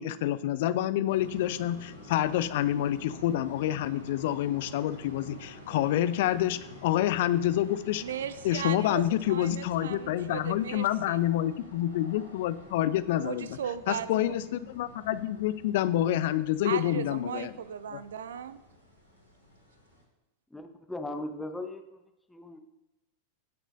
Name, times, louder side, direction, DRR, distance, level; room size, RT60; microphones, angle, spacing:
voice 1, 0.0-8.0 8.4-13.6 13.9-17.5 17.9-18.0, left 12 dB, 50° left, 15 dB, 0.5 m, -28 dB
sound 1, 1.0-20.0, left 1 dB, 85° right, 2.9 m, -49 dB
voice 2, 8.0-11.2 13.2-14.1 16.6-18.6, right 8 dB, 65° right, 14 dB, 0.6 m, -37 dB
voice 3, 20.5-22.0 22.3-22.6, left 2 dB, 5° left, 5 dB, 0.9 m, -38 dB
17.0 x 6.1 x 2.6 m, 0.97 s
figure-of-eight pair, 90°, 0 cm